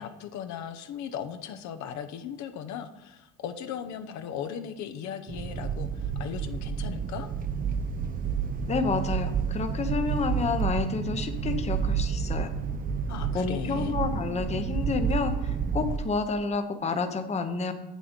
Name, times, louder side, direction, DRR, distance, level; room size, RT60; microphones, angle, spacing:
voice 1, 0.0-7.3 13.1-14.0, left 8 dB, 60° left, 8 dB, 0.9 m, -37 dB
sound 1, 5.3-16.0, right 7 dB, 25° right, 0.6 m, -30 dB
voice 2, 8.7-12.5 13.3-17.7, left 4 dB, 20° left, 7 dB, 0.9 m, -29 dB
7.8 x 6.3 x 5.2 m, 0.97 s
supercardioid pair, 110°, 32 cm